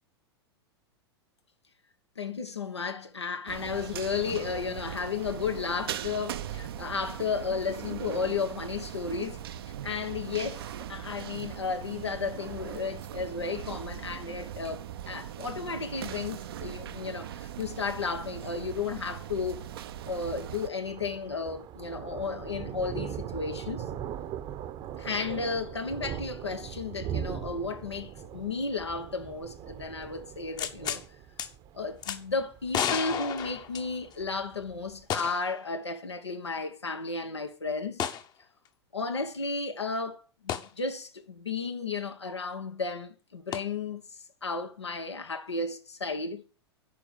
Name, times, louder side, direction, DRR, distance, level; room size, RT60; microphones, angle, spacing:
voice 1, 2.2-9.4 9.8-19.7 20.1-23.8 25.0-31.0 31.7-38.0 38.9-46.4, left 4 dB, 85° left, 1.2 m, -33 dB
sound 1, 3.5-20.7, right 11 dB, 60° right, 0.7 m, -40 dB
Thunder, 18.3-35.0, right 9 dB, 35° right, 0.9 m, -41 dB
sound 2, 30.6-31.0 31.4-31.5 32.0-32.2 32.7-34.2 35.1-35.5 35.9-36.0 38.0-38.3 40.5-40.7 43.5-43.6, left 8 dB, 30° left, 1.0 m, -32 dB
11.0 x 4.6 x 7.0 m
figure-of-eight pair, 95°, 14 cm